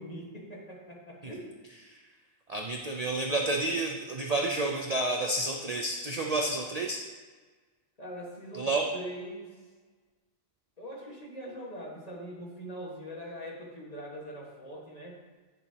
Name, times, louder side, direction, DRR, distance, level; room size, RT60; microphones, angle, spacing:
voice 1, 0.0-1.5 8.0-9.6 10.8-15.2, equal, 30° left, -3 dB, 1.6 m, -42 dB
voice 2, 2.5-7.0 8.5-8.9, right 2 dB, 55° right, 2 dB, 0.4 m, -30 dB
9.1 x 6.9 x 2.9 m, 1.4 s
omnidirectional pair, 1.4 m